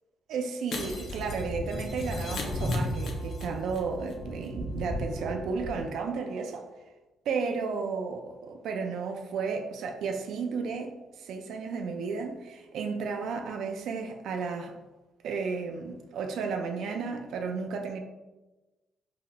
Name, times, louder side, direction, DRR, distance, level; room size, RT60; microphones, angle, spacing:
voice 1, 0.3-6.7 7.3-14.7 15.2-18.0, right 5 dB, 75° right, 0.3 m, -33 dB
Shatter, 0.7-4.1 4.4-4.5, left 3 dB, 65° left, 0.6 m, -40 dB
sound 1, 0.8-5.8, equal, 25° left, 1.3 m, -35 dB
3.8 x 2.7 x 2.2 m
cardioid pair, 90°, 0 cm